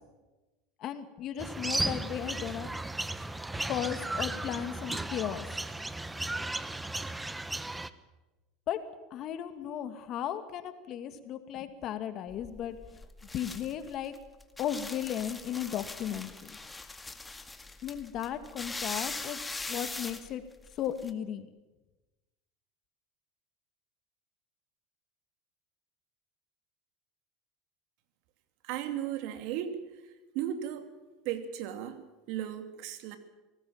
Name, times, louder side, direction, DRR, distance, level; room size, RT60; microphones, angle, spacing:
voice 1, 0.8-2.7 3.7-5.5 8.7-8.8 9.1-12.8 13.3-14.1 14.6-16.6 17.8-19.4 19.7-20.4 20.8-21.5, left 10 dB, 50° left, 10 dB, 2.2 m, -35 dB
sound 1, 1.4-7.9, right 2 dB, 10° right, 1.1 m, -35 dB
sound 2, 12.3-21.1, left 3 dB, 15° left, 2.0 m, -41 dB
voice 2, 28.6-29.8 30.3-30.9 31.2-33.2, right 10 dB, 65° right, 8 dB, 2.7 m, -35 dB
25.0 x 18.5 x 7.4 m, 1.1 s
hypercardioid pair, 95°, 0 cm